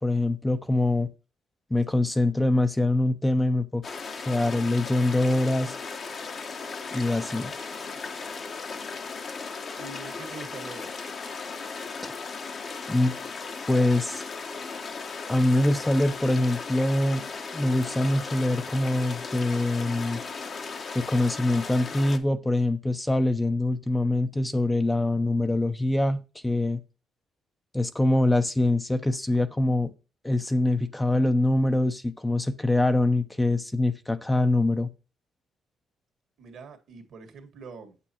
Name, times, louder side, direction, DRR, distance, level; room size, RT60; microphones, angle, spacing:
voice 1, 0.0-1.1 1.7-3.8 4.2-5.7 6.9-7.5 12.0-12.1 12.9-13.1 13.7-14.2 15.3-17.2 17.5-20.2 20.9-26.8 27.7-29.9 30.2-34.9, left 2 dB, 10° left, 0.7 m, -24 dB
sound 1, 3.8-22.2, left 4 dB, 50° left, 1.2 m, -37 dB
voice 2, 9.8-10.9 36.4-38.0, right 4 dB, 70° right, 1.8 m, -44 dB
7.9 x 6.9 x 2.9 m
cardioid pair, 90°, 0 cm